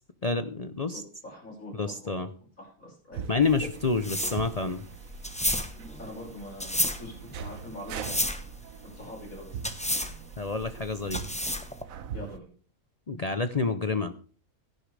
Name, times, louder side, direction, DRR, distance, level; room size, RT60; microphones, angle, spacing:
voice 1, 0.2-1.0 1.7-2.3 3.3-4.8 10.4-11.2 13.1-14.1, left 4 dB, 35° left, 10 dB, 0.7 m, -28 dB
voice 2, 0.9-2.1 2.6-3.3 6.0-8.5 8.9-9.6 12.1-12.5, left 1 dB, 80° left, 0 dB, 6.3 m, -43 dB
sound 1, 3.1-12.4, right 8 dB, 90° right, 1.3 m, -42 dB
sound 2, 3.4-11.8, left 1 dB, 5° left, 0.9 m, -32 dB
16.5 x 10.5 x 3.4 m, 0.40 s
omnidirectional pair, 1.4 m